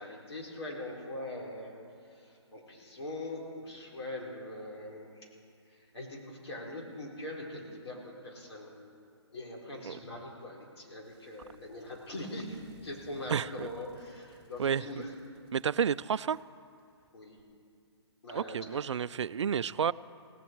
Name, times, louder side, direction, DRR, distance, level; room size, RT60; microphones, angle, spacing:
voice 1, 0.0-5.3 5.7-8.7 9.3-15.1 17.1-17.4 18.2-18.8, left 1 dB, 65° left, -2 dB, 4.4 m, -42 dB
sound 1, 11.0-17.4, right 2 dB, 5° right, 2.5 m, -62 dB
voice 2, 13.3-13.7 14.6-14.8 15.5-16.4 18.3-19.9, right 7 dB, 85° right, 17 dB, 0.4 m, -30 dB
17.5 x 16.5 x 4.6 m, 2.3 s
hypercardioid pair, 165°, 15 cm